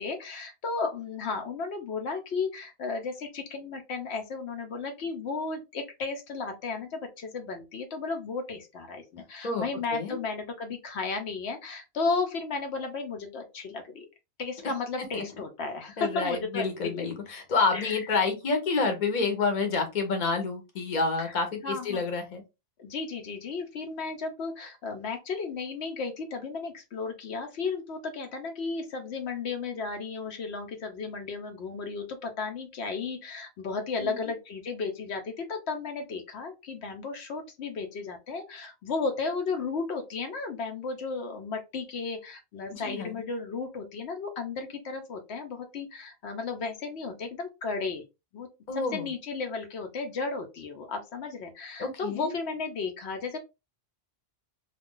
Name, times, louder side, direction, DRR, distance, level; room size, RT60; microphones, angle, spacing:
voice 1, 0.0-14.1 14.4-17.1 17.7-18.0 21.2-21.3 21.6-22.0 22.8-48.0 48.3-53.4, left 4 dB, 75° left, 4 dB, 0.9 m, -34 dB
voice 2, 16.0-22.4 34.0-34.3 42.7-43.2 48.7-49.1 51.8-52.3, left 4 dB, 45° left, 4 dB, 0.9 m, -28 dB
2.5 x 2.2 x 3.6 m, 0.25 s
omnidirectional pair, 1.1 m